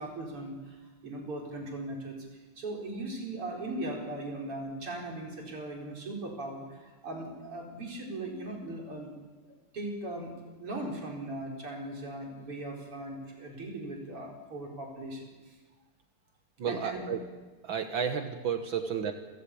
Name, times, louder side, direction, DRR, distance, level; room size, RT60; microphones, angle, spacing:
voice 1, 0.0-2.3 2.6-9.1 9.4-15.6 16.7-17.1 18.8-18.9, right 2 dB, 85° right, -1 dB, 5.7 m, -39 dB
voice 2, 16.6-17.2 17.6-19.1, right 7 dB, 65° right, 6 dB, 2.0 m, -32 dB
29.0 x 15.5 x 8.7 m, 1.3 s
omnidirectional pair, 2.4 m